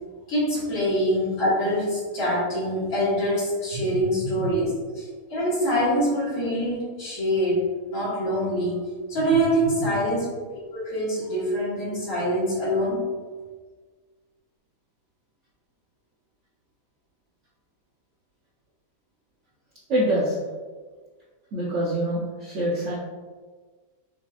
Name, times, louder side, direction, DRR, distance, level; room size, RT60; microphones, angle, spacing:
voice 1, 0.3-7.6 7.9-8.8 9.1-13.0, equal, 55° left, -9 dB, 2.0 m, -25 dB
voice 2, 3.7-4.5 19.9-20.4 21.5-23.0, right 1 dB, 55° right, -7 dB, 1.0 m, -26 dB
6.3 x 2.9 x 2.4 m, 1.4 s
omnidirectional pair, 1.7 m